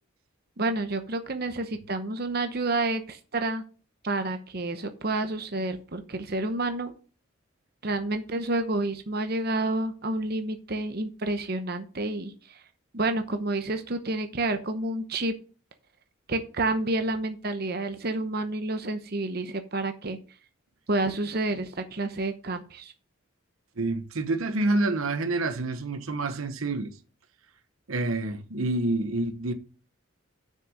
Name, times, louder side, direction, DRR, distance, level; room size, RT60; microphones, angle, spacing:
voice 1, 0.6-3.6 4.0-6.9 7.8-12.6 12.9-15.3 16.3-20.2 20.9-22.9, right 2 dB, 45° right, 0.9 m, -29 dB
voice 2, 23.8-26.9 27.9-29.5, right 2 dB, 80° right, 1.0 m, -27 dB
6.7 x 6.2 x 6.3 m
head